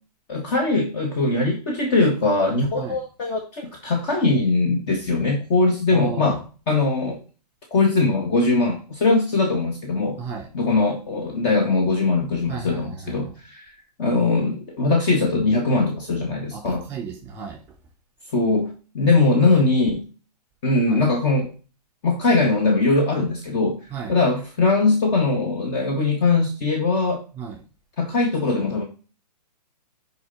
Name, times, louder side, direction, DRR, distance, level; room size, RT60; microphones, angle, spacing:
voice 1, 0.3-6.4 6.7-7.2 7.7-10.2 10.5-13.7 14.0-16.8 18.3-20.0 20.6-21.5 22.0-23.8 24.1-27.2 28.0-28.8, left 3 dB, 35° left, 2 dB, 2.1 m, -21 dB
voice 2, 5.9-6.4 10.2-10.5 12.5-13.2 16.5-17.6 20.9-21.0 23.9-24.1 27.4-27.6, right 5 dB, 10° right, 0 dB, 3.8 m, -33 dB
11.0 x 5.1 x 4.2 m, 0.35 s
hypercardioid pair, 135°, 21 cm